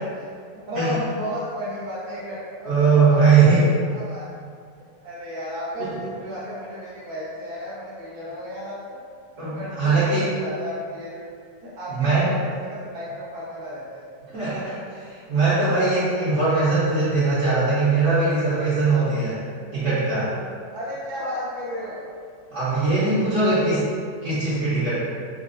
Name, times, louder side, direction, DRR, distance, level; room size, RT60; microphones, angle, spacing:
voice 1, 0.7-3.2 3.9-4.3 5.0-9.0 9.4-11.2 11.6-14.1 20.7-22.0, equal, 85° right, -8 dB, 0.4 m, -33 dB
voice 2, 2.7-3.7 5.8-6.0 9.4-10.3 11.9-12.3 14.3-19.4 19.7-20.3 22.5-23.9 24.2-25.0, right 3 dB, 55° right, -12 dB, 1.0 m, -20 dB
4.0 x 2.2 x 2.5 m, 2.2 s
omnidirectional pair, 1.8 m